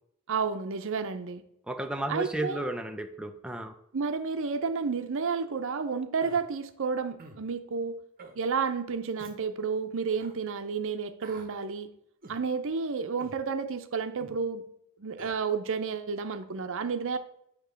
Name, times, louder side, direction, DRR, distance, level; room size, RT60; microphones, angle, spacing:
voice 1, 0.3-1.4 2.1-2.7 3.9-7.9 8.3-11.9 12.3-14.6 15.0-17.2, right 5 dB, 65° right, 9 dB, 0.6 m, -31 dB
voice 2, 1.7-3.7, right 1 dB, 5° right, 5 dB, 0.4 m, -33 dB
Human voice, 6.2-6.4 7.2-7.4 8.2-8.4 9.2-9.4 10.2-10.3 11.2-11.5 12.2-12.4 13.2-13.4 14.2-14.4 15.2-15.3, right 2 dB, 40° right, 0.9 m, -48 dB
8.9 x 3.0 x 6.3 m, 0.75 s
head